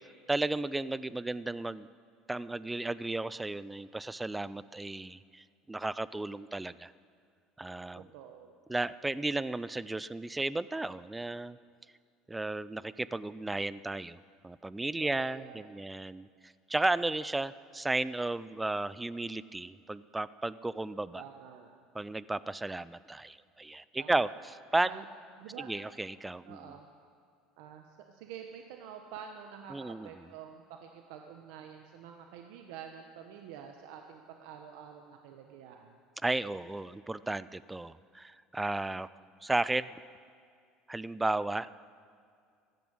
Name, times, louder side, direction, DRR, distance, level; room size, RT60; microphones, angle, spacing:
voice 1, 0.3-1.9 2.3-6.9 7.6-8.1 8.7-11.6 12.3-21.2 21.9-24.3 24.7-24.9 25.6-26.8 29.7-30.1 36.2-39.1 39.4-39.9 40.9-41.7, right 2 dB, 10° right, 17 dB, 0.3 m, -34 dB
voice 2, 8.0-8.6 15.0-15.8 21.1-21.7 24.0-24.4 24.8-25.0 25.4-25.7 26.5-26.9 27.6-36.0, right 8 dB, 75° right, 4 dB, 1.1 m, -48 dB
15.0 x 10.5 x 8.8 m, 2.3 s
cardioid pair, 140°, 0 cm